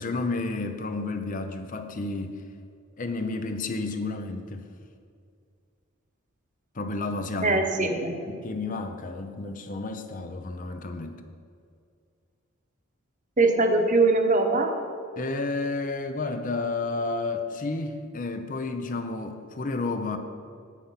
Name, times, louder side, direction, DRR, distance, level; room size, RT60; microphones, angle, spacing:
voice 1, 0.0-2.4 3.0-4.7 6.7-7.9 8.3-11.2 15.2-20.2, left 3 dB, 35° left, 7 dB, 0.6 m, -31 dB
voice 2, 7.4-8.2 13.4-14.7, right 3 dB, 35° right, 4 dB, 1.0 m, -22 dB
9.2 x 8.1 x 5.7 m, 2.3 s
head